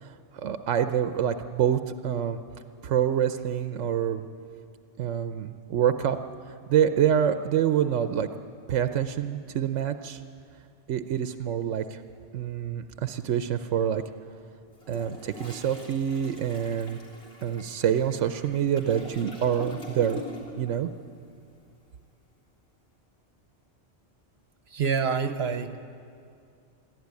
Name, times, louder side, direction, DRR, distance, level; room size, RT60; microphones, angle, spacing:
voice 1, 0.0-2.4 2.8-4.3 5.0-6.2 6.7-8.3 8.7-10.2 10.9-12.0 12.3-14.0 14.9-17.0 17.4-20.2 20.6-20.9, right 9 dB, 85° right, 9 dB, 1.0 m, -26 dB
Toilet flush, 14.7-20.7 21.0-21.2, left 2 dB, 60° left, 3.6 m, -43 dB
voice 2, 24.7-25.8, right 6 dB, 60° right, 9 dB, 1.1 m, -27 dB
22.0 x 14.0 x 9.6 m, 2.4 s
omnidirectional pair, 1.2 m